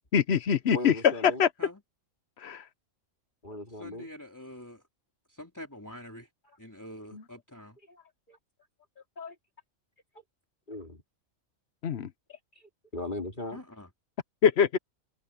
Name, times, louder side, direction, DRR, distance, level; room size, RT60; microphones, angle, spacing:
voice 1, 0.1-0.9 1.4-1.5 2.4-2.6 7.1-7.2 11.8-12.1 14.4-14.8, left 7 dB, 55° left, 1.1 m, -24 dB
voice 2, 0.7-1.4 3.4-4.1 6.5-6.6 7.8-8.4 9.0-9.4 10.7-11.0 12.3-13.7, left 2 dB, 35° left, 3.2 m, -39 dB
voice 3, 3.8-4.8 5.3-6.3 6.6-7.8 13.5-13.9, left 1 dB, 15° left, 3.6 m, -45 dB
omnidirectional pair, 1.4 m